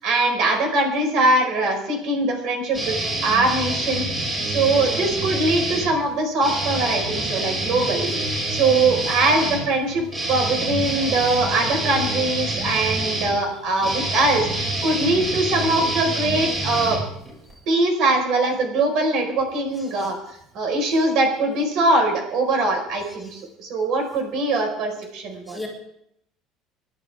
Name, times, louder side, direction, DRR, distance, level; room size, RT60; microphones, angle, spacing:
voice 1, 0.0-3.0 3.2-8.1 8.5-17.0 17.7-20.2 20.5-25.6, right 2 dB, 55° right, 3 dB, 5.0 m, -22 dB
sound 1, 2.7-5.9 6.4-17.5, right 1 dB, 20° right, 6.1 m, -26 dB
voice 2, 13.0-13.5 13.8-14.4 17.5-17.6 19.8-20.1 23.2-23.3 25.5-25.7, left 2 dB, 5° left, -2 dB, 4.0 m, -40 dB
28.5 x 11.5 x 3.6 m, 0.76 s
cardioid pair, 155°, 0 cm